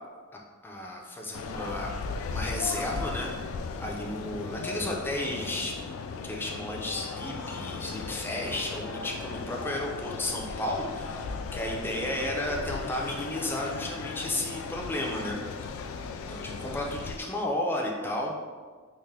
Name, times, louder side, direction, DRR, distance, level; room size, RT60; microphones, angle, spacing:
voice 1, 0.6-1.9 2.3-5.8 6.2-15.4 16.3-18.3, left 1 dB, 10° left, -1 dB, 0.4 m, -33 dB
sound 1, 1.3-17.2, left 4 dB, 80° left, 0.3 m, -36 dB
3.6 x 2.5 x 3.3 m, 1.5 s
head